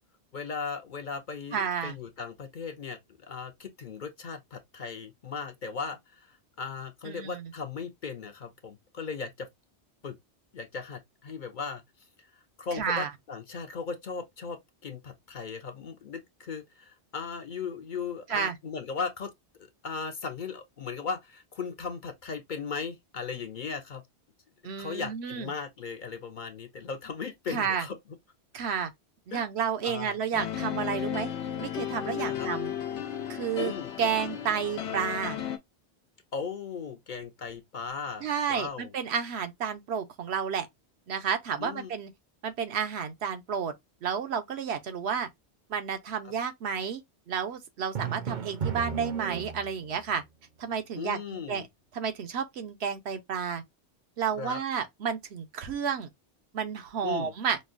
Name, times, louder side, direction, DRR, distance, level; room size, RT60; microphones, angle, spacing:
voice 1, 0.3-9.5 10.0-10.2 10.5-11.8 12.6-19.3 19.8-24.0 24.8-28.0 29.3-29.4 29.8-30.2 32.2-32.5 33.6-33.9 36.3-38.9 41.6-41.9 51.0-51.7 54.4-54.6 57.0-57.3, left 5 dB, 55° left, 0.7 m, -37 dB
voice 2, 1.5-1.9 7.0-7.5 12.7-13.1 18.3-18.6 24.6-25.5 27.5-27.9 28.5-28.9 29.3-31.3 31.6-32.7 33.3-35.4 38.2-40.7 41.1-42.1 42.4-43.7 44.0-45.3 45.7-47.0 47.3-50.2 50.6-51.7 51.9-53.6 54.2-56.1 56.5-57.6, right 7 dB, 75° right, 0.9 m, -31 dB
sound 1, 30.3-35.6, left 9 dB, 85° left, 0.9 m, -34 dB
Drum, 47.9-50.0, right 7 dB, 50° right, 0.7 m, -34 dB
5.2 x 2.1 x 2.5 m
omnidirectional pair, 1.1 m